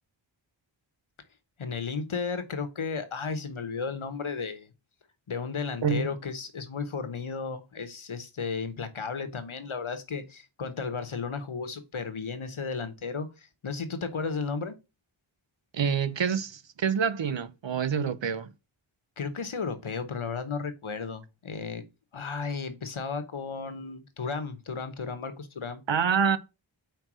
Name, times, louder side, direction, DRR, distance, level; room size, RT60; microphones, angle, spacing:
voice 1, 1.6-4.7 5.3-14.7 19.2-21.8 22.1-25.8, left 5 dB, 80° left, 1.1 m, -34 dB
voice 2, 15.7-18.5 25.9-26.4, right 6 dB, 65° right, 0.7 m, -26 dB
4.6 x 4.6 x 6.0 m
wide cardioid pair, 45°, 48 cm